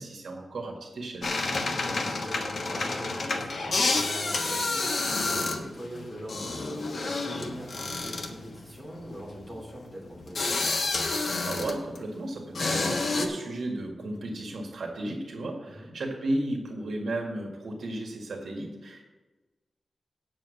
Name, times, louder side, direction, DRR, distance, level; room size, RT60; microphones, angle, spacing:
voice 1, 0.0-1.6 11.4-19.1, right 1 dB, 75° right, 1 dB, 1.8 m, -34 dB
sound 1, 1.2-12.1 12.5-13.3, left 3 dB, 60° left, 1.3 m, -29 dB
voice 2, 1.6-10.6 15.6-15.9, equal, 5° right, -4 dB, 3.2 m, -42 dB
8.9 x 7.4 x 6.5 m, 1.2 s
wide cardioid pair, 180°, 0 cm